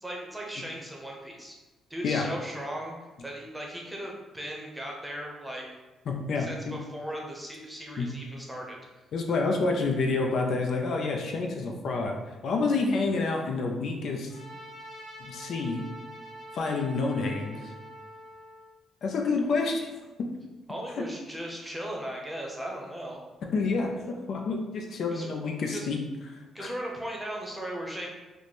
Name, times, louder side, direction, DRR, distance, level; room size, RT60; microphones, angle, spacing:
voice 1, 0.0-1.5 1.9-2.9 3.2-5.7 6.4-8.8 20.7-23.2 25.1-25.3 25.7-25.9 26.5-28.1, right 1 dB, 5° right, -1 dB, 0.8 m, -37 dB
voice 2, 6.1-6.8 8.0-8.1 9.1-12.1 12.4-14.3 15.2-15.8 16.5-17.7 19.0-19.9 21.0-21.1 23.5-26.0 26.3-26.7, left 3 dB, 65° left, 1 dB, 0.5 m, -28 dB
Trumpet, 14.3-18.7, equal, 20° left, 1.5 m, -45 dB
3.1 x 2.1 x 4.1 m, 1.2 s
cardioid pair, 90°, 0 cm